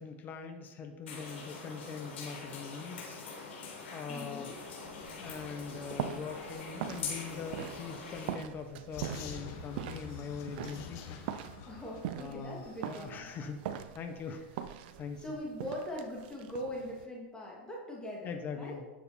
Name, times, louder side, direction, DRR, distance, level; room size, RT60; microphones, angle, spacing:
voice 1, 0.0-3.6 3.9-4.5 5.2-11.0 12.2-13.6 13.9-14.4 15.0-15.2 18.2-18.8, left 5 dB, 30° left, 5 dB, 1.2 m, -42 dB
sound 1, 1.1-8.3, left 4 dB, 75° left, 3.4 m, -43 dB
voice 2, 4.1-4.6 11.7-13.3 14.3-14.4 15.2-18.8, equal, 15° left, -3 dB, 2.4 m, -42 dB
sound 2, 4.8-17.0, right 10 dB, 60° right, 0.6 m, -43 dB
Vehicle, 8.9-12.9, left 7 dB, 50° left, 1.2 m, -46 dB
9.8 x 6.7 x 4.4 m, 1.2 s
hypercardioid pair, 100°, 6 cm